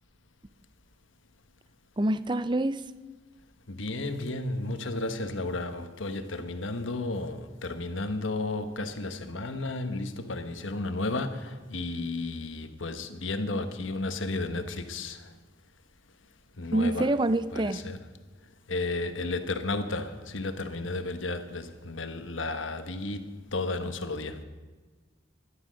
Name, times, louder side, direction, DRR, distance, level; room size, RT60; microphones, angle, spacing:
voice 1, 2.0-2.8 16.7-17.8, right 1 dB, 25° right, 0.5 m, -26 dB
voice 2, 3.7-15.3 16.6-17.1 17.5-18.0 18.7-24.4, left 2 dB, 80° left, 1.3 m, -33 dB
14.0 x 11.5 x 6.4 m
head